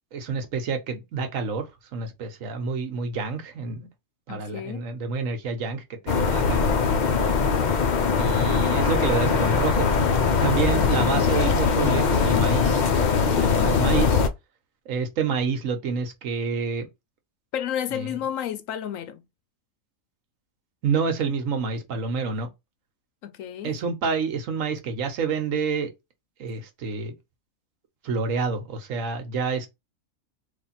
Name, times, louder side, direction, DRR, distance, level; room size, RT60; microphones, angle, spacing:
voice 1, 0.1-1.7 1.9-3.9 4.3-6.7 8.2-9.9 10.4-12.8 13.3-14.2 14.9-16.9 17.9-18.1 20.8-22.5 23.6-25.9 26.4-27.1 28.0-29.7, right 5 dB, 70° right, 1.2 m, -28 dB
voice 2, 4.3-4.8 10.7-11.6 17.5-19.2 23.2-23.8, left 9 dB, 80° left, 1.0 m, -32 dB
sound 1, 6.1-14.3, left 5 dB, 55° left, 0.5 m, -21 dB
3.4 x 2.5 x 4.2 m
omnidirectional pair, 1.4 m